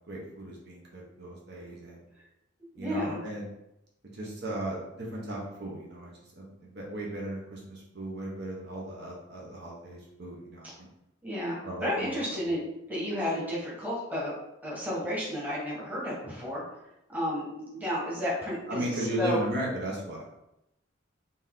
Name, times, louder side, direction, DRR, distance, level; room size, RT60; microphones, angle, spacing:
voice 1, 0.1-2.0 2.8-3.4 4.1-10.9 11.6-12.1 18.7-20.3, right 1 dB, 55° right, -3 dB, 1.0 m, -36 dB
voice 2, 2.7-3.2 11.2-14.3 14.6-16.6 17.1-19.4, equal, 10° right, -6 dB, 1.2 m, -32 dB
4.3 x 2.7 x 3.7 m, 0.87 s
head